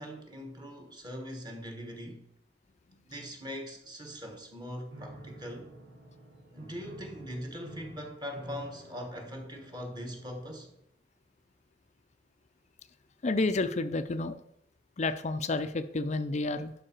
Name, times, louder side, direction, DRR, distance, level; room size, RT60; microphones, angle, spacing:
voice 1, 0.0-2.3 3.0-5.7 6.5-10.7, equal, 25° right, 1.5 m, -41 dB
Piano, 4.9-10.8, right 1 dB, 75° right, 2.2 m, -49 dB
voice 2, 13.2-14.4 15.0-16.7, left 3 dB, 40° left, 0.5 m, -30 dB
11.5 x 4.9 x 4.6 m
head